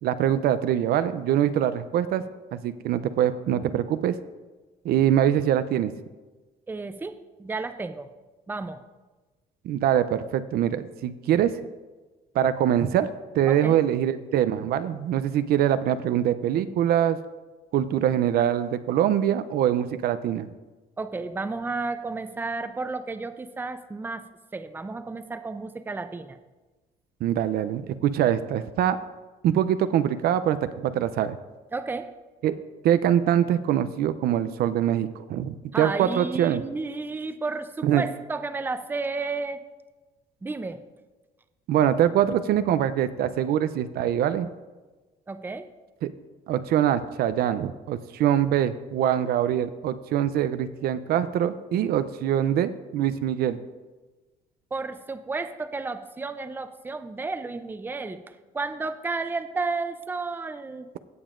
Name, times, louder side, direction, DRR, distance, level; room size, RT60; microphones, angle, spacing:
voice 1, 0.0-2.2 2.5-4.2 4.8-5.9 9.6-11.5 12.3-13.1 13.4-17.2 17.7-20.5 27.2-29.0 29.4-31.4 32.4-32.5 32.8-36.6 37.8-38.0 41.7-44.5 46.0-46.1 46.5-53.6, right 10 dB, 65° right, 12 dB, 0.5 m, -23 dB
voice 2, 6.7-8.1 8.5-8.8 13.5-13.8 21.0-24.2 24.5-26.4 31.7-32.1 35.7-39.6 40.4-40.8 45.3-45.7 54.7-58.2 58.5-60.9, right 3 dB, 10° right, 9 dB, 0.5 m, -32 dB
16.5 x 7.1 x 2.5 m, 1.2 s
cardioid pair, 110°, 17 cm